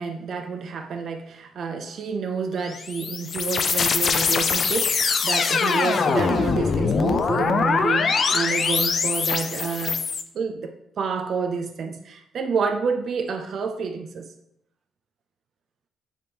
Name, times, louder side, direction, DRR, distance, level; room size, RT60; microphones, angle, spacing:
voice 1, 0.0-10.1 10.3-14.3, right 5 dB, 60° right, 0.3 m, -29 dB
sound 1, 2.6-10.2, left 5 dB, 50° left, 0.3 m, -23 dB
4.2 x 3.3 x 2.8 m
cardioid pair, 90°, 0 cm